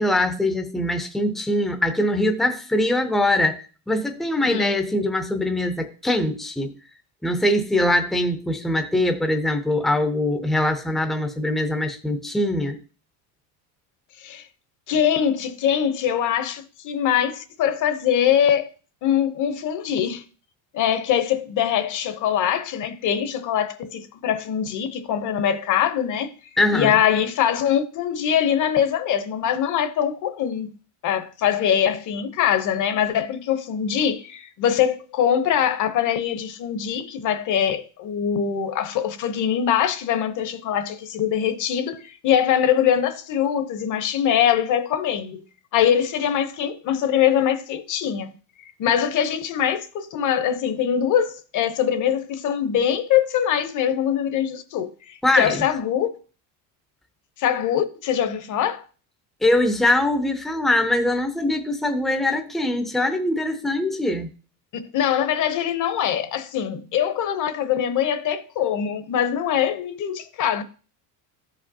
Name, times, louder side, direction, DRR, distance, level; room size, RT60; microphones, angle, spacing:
voice 1, 0.0-6.7 7.2-12.8 26.6-26.9 55.2-55.6 59.4-64.3, left 1 dB, ahead, 0.6 m, -22 dB
voice 2, 14.9-18.7 19.0-20.2 20.7-26.3 26.7-30.7 31.0-45.4 45.7-48.3 48.8-56.1 57.4-58.8 64.9-70.6, left 9 dB, 45° left, 0.9 m, -23 dB
13.5 x 5.1 x 2.8 m
cardioid pair, 145°, 43 cm